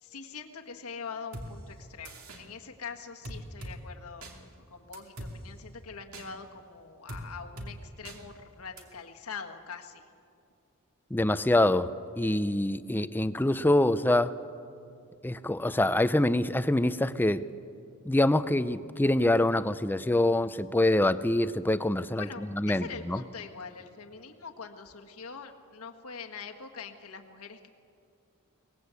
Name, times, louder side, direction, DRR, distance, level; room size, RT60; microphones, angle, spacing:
voice 1, 0.0-4.4 4.7-10.0 22.2-27.7, left 5 dB, 75° left, 4 dB, 1.6 m, -43 dB
sound 1, 1.3-1.5 2.1-2.4 3.3-3.8 4.2-4.3 4.9-5.3 6.1-6.3 7.1-7.2 7.6-7.7 8.1-8.2 8.8-8.9, right 1 dB, 70° right, 2.8 m, -40 dB
voice 2, 11.1-14.3 15.2-17.4 18.0-22.3 22.5-23.2, left 1 dB, 10° left, 14 dB, 0.5 m, -25 dB
23.0 x 19.0 x 8.3 m, 2.5 s
head